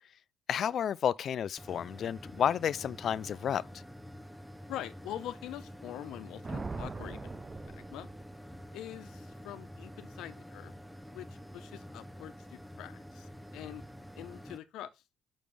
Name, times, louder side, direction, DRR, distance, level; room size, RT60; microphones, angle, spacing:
voice 1, 0.5-3.6, left 9 dB, 60° left, 0.3 m, -31 dB
sound 1, 1.6-14.6, equal, ahead, 0.7 m, -48 dB
voice 2, 4.7-8.1 8.7-10.7 11.1-13.8 14.1-15.0, left 12 dB, 90° left, 0.8 m, -44 dB
Thunder, 6.4-8.6, right 4 dB, 25° right, 0.4 m, -41 dB
6.8 x 6.3 x 3.4 m
cardioid pair, 90°, 0 cm